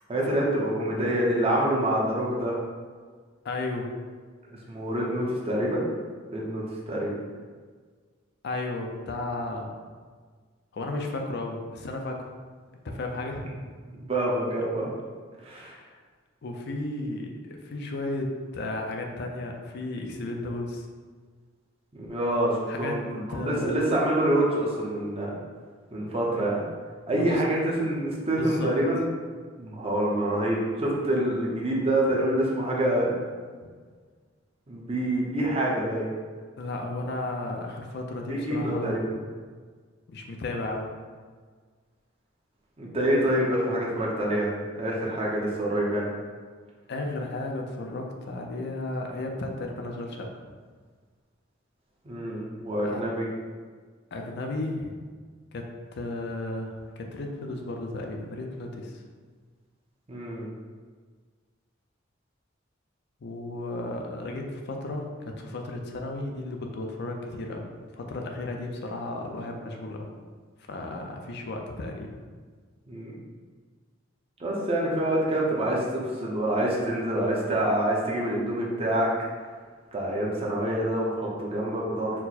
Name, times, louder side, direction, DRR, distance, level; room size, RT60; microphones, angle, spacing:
voice 1, 0.1-2.5 4.5-5.9 6.3-7.2 13.9-14.9 15.4-15.7 22.0-23.0 23.3-25.3 25.9-26.6 27.1-29.1 29.6-33.1 34.7-36.1 38.3-39.0 42.8-44.5 44.8-46.1 52.0-53.3 60.1-60.5 72.9-73.1 74.4-79.1 79.9-82.1, right 1 dB, 30° right, -4 dB, 0.7 m, -26 dB
voice 2, 3.4-3.9 8.4-9.8 10.7-12.3 12.8-13.6 15.5-16.0 16.4-20.9 22.7-23.0 23.3-23.7 27.1-27.4 28.4-28.7 36.6-39.0 40.1-40.9 46.9-50.3 52.8-53.0 54.1-54.9 55.5-59.0 63.2-70.1 70.7-72.2, left 2 dB, 60° left, 2 dB, 0.5 m, -34 dB
4.5 x 2.1 x 4.1 m, 1.5 s
head